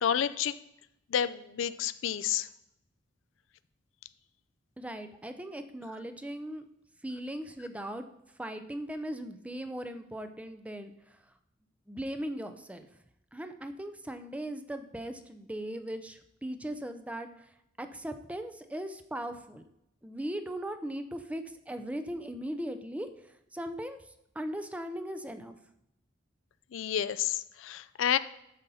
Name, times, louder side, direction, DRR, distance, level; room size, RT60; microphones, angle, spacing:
voice 1, 0.0-0.6 1.1-2.5 26.7-28.2, left 9 dB, 75° left, 13 dB, 0.4 m, -30 dB
voice 2, 4.8-6.7 7.0-8.1 8.4-11.2 11.9-12.9 13.3-17.3 17.8-19.6 20.0-23.1 23.5-24.0 24.3-25.6, right 1 dB, 5° right, 8 dB, 0.5 m, -38 dB
9.2 x 6.8 x 4.1 m, 0.83 s
head